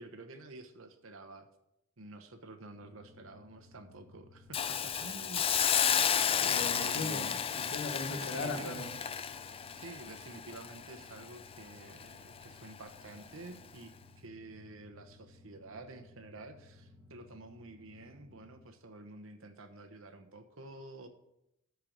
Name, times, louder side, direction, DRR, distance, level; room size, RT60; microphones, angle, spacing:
voice 1, 0.0-1.5 2.0-5.5 6.7-7.4 8.1-8.9 9.7-21.1, right 2 dB, 70° right, 7 dB, 1.1 m, -49 dB
sound 1, 2.7-18.8, left 2 dB, 5° right, 1.5 m, -59 dB
Hiss, 4.5-11.6 12.0-12.1, left 8 dB, 25° left, 0.4 m, -32 dB
voice 2, 6.4-8.9, left 2 dB, 55° left, 5 dB, 1.4 m, -38 dB
13.5 x 4.7 x 5.2 m, 0.83 s
head